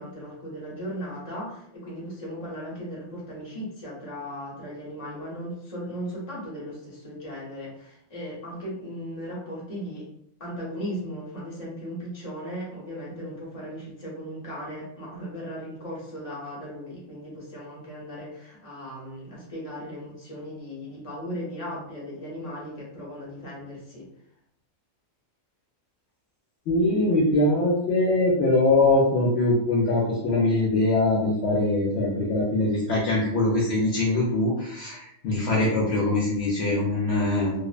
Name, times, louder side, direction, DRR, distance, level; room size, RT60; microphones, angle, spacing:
voice 1, 0.0-10.1 10.4-24.1, equal, 30° left, -5 dB, 0.8 m, -37 dB
voice 2, 26.7-37.7, left 2 dB, 65° left, -4 dB, 0.8 m, -22 dB
2.7 x 2.0 x 2.3 m, 0.76 s
omnidirectional pair, 1.4 m